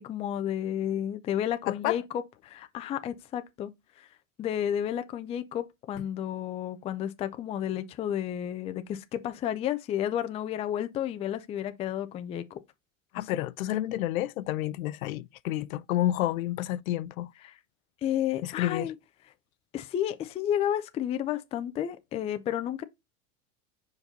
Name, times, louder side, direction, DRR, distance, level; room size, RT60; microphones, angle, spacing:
voice 1, 0.0-3.7 4.0-4.1 4.4-12.6 17.4-17.5 18.0-18.9 19.7-22.8, left 10 dB, 15° left, 0.3 m, -31 dB
voice 2, 1.6-2.0 13.1-17.3 18.4-18.9, left 14 dB, 80° left, 0.6 m, -30 dB
5.3 x 4.8 x 4.0 m
supercardioid pair, 120°, 41 cm